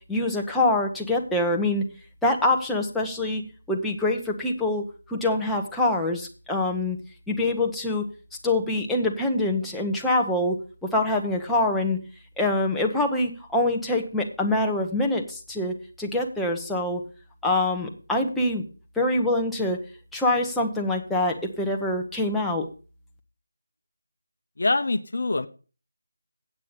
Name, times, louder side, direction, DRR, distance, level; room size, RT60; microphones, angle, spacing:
voice 1, 0.1-1.8 2.2-3.4 3.7-7.0 7.3-8.1 8.4-10.6 10.9-12.0 12.4-17.0 17.4-18.6 19.0-19.8 20.1-22.7, left 2 dB, 5° left, -1 dB, 1.0 m, -25 dB
voice 2, 24.6-25.5, left 2 dB, 60° left, 10 dB, 0.8 m, -24 dB
8.8 x 7.4 x 6.7 m, 0.36 s
figure-of-eight pair, 170°, 0 cm